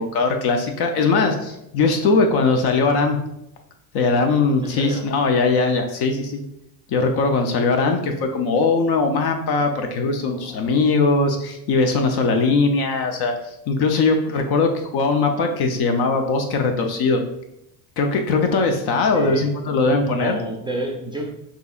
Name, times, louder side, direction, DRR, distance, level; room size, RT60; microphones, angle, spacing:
voice 1, 0.0-3.2 3.9-6.4 6.9-13.3 13.7-17.2 18.0-20.4, left 3 dB, 55° left, 5 dB, 0.6 m, -20 dB
voice 2, 4.6-5.0 10.2-10.7 19.1-19.5 19.9-21.3, right 1 dB, 10° right, -1 dB, 0.4 m, -30 dB
6.4 x 2.9 x 2.4 m, 0.82 s
cardioid pair, 130°, 47 cm